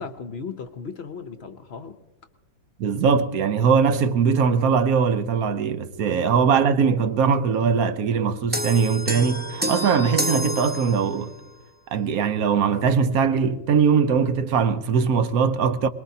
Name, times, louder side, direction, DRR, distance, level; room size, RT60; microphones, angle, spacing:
voice 1, 0.0-2.0 6.0-6.3, left 5 dB, 55° left, 0.8 m, -36 dB
voice 2, 2.8-11.3 11.9-15.9, right 6 dB, 75° right, 1.2 m, -21 dB
sound 1, 8.5-11.4, equal, 10° right, 0.6 m, -29 dB
22.5 x 20.5 x 2.7 m
omnidirectional pair, 1.6 m